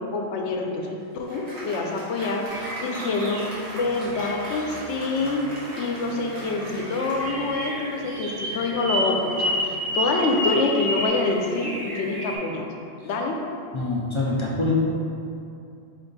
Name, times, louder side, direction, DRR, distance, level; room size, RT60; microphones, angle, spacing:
voice 1, 0.0-5.4 5.8-12.7 13.0-13.4, left 3 dB, 85° left, 1 dB, 0.9 m, -26 dB
Applause, 0.7-8.2, right 1 dB, 80° right, 1.6 m, -39 dB
sound 1, 2.5-12.4, right 1 dB, 35° right, 0.6 m, -39 dB
sound 2, 7.2-11.1, equal, 60° right, 0.9 m, -27 dB
voice 2, 13.7-14.7, left 2 dB, 45° left, -4 dB, 0.4 m, -25 dB
4.8 x 2.6 x 3.9 m, 2.6 s
omnidirectional pair, 1.1 m